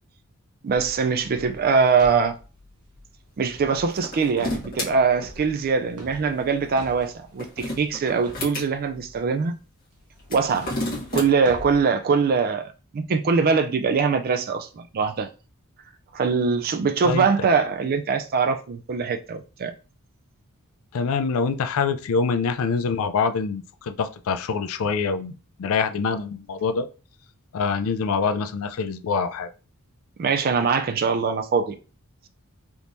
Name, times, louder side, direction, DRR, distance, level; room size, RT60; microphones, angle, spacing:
voice 1, 0.6-2.3 3.4-9.5 10.3-10.7 11.1-15.3 16.1-19.7 30.2-31.8, right 5 dB, 40° right, 0.4 m, -22 dB
sound 1, 0.7-9.3 9.9-11.8, equal, 90° right, 0.9 m, -45 dB
sound 2, 3.9-4.9 7.2-8.7 10.2-11.3, left 1 dB, 40° left, 1.3 m, -30 dB
voice 2, 20.9-26.9 27.5-29.5, left 5 dB, 65° left, 0.4 m, -25 dB
3.5 x 2.9 x 2.6 m
head